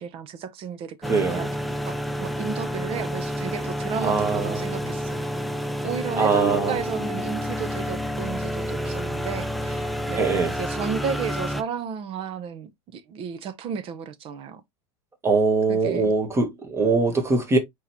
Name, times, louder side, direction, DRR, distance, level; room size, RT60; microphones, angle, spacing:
voice 1, 0.0-1.5 1.8-5.2 5.8-14.6 15.7-16.1, right 7 dB, 40° right, 0.8 m, -33 dB
sound 1, 1.0-11.6, equal, ahead, 0.4 m, -29 dB
voice 2, 1.1-1.5 4.0-4.7 6.2-6.8 10.2-10.5 15.2-17.6, right 4 dB, 20° right, 1.5 m, -22 dB
4.7 x 3.6 x 2.8 m
supercardioid pair, 125°, 14 cm